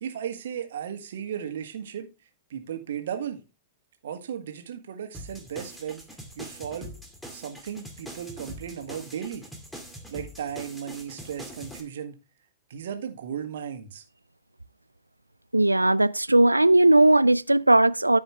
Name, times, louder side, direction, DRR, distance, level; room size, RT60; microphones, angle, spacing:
voice 1, 0.0-2.1 2.5-3.4 4.0-6.0 6.3-6.9 7.3-9.4 10.1-12.2 12.7-14.0, right 8 dB, 60° right, 1.7 m, -35 dB
sound 1, 5.1-11.8, equal, 5° left, 2.3 m, -43 dB
voice 2, 15.5-18.2, right 2 dB, 90° right, 0.4 m, -18 dB
14.0 x 5.2 x 3.4 m
figure-of-eight pair, 100°, 0 cm